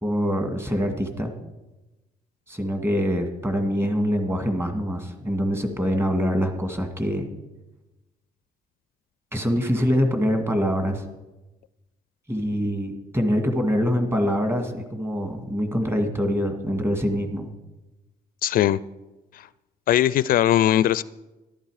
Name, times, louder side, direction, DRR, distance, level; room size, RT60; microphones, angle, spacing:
voice 1, 0.0-1.3 2.5-7.3 9.3-11.0 12.3-17.5, equal, 15° right, 6 dB, 2.0 m, -24 dB
voice 2, 18.4-18.8 19.3-19.5 19.9-21.0, left 12 dB, 55° left, 17 dB, 0.4 m, -20 dB
13.5 x 12.0 x 4.9 m, 1.0 s
cardioid pair, 110°, 17 cm